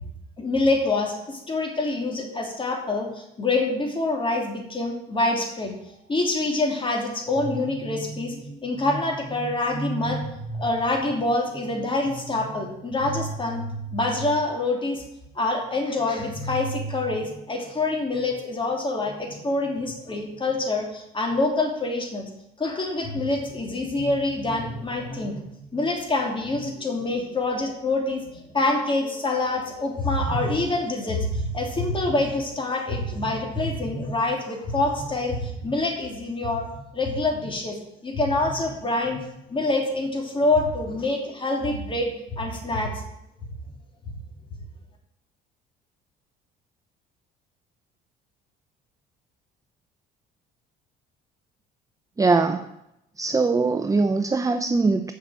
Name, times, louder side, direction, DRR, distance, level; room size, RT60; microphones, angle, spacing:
voice 1, 0.4-5.7 6.1-15.0 15.3-22.2 22.6-36.7 36.9-43.0 43.4-43.5, left 2 dB, 25° left, 1 dB, 3.0 m, -26 dB
voice 2, 52.2-52.7 53.2-55.1, right 3 dB, 15° right, 8 dB, 0.6 m, -21 dB
7.6 x 6.5 x 8.0 m, 0.83 s
supercardioid pair, 90°, 19 cm